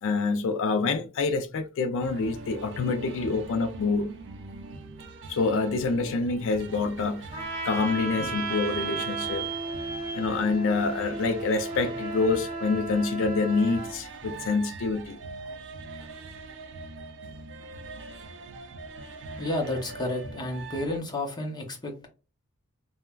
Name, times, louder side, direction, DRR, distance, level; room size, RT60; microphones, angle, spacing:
voice 1, 0.0-4.1 5.3-7.2 7.6-9.5 10.1-15.2, left 4 dB, 60° left, 0.3 m, -26 dB
sound 1, 2.0-21.0, right 3 dB, 55° right, 0.4 m, -43 dB
Vehicle / Squeak, 6.3-11.9, right 10 dB, 40° right, 1.1 m, -41 dB
Trumpet, 7.3-13.9, right 2 dB, 20° right, 1.3 m, -35 dB
voice 2, 19.4-22.1, left 1 dB, 20° left, 0.6 m, -31 dB
3.2 x 2.0 x 2.3 m
head